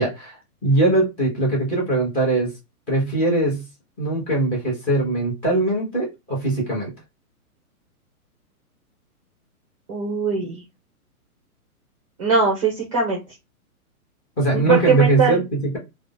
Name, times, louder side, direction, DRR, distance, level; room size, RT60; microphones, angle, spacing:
voice 1, 0.0-2.5 2.9-3.6 4.0-6.9 14.4-15.8, right 2 dB, 20° left, -4 dB, 1.2 m, -21 dB
voice 2, 9.9-10.6 12.2-13.2 14.5-15.4, right 5 dB, 25° right, 0 dB, 0.5 m, -21 dB
3.6 x 2.2 x 2.5 m, 0.24 s
hypercardioid pair, 160°, 44 cm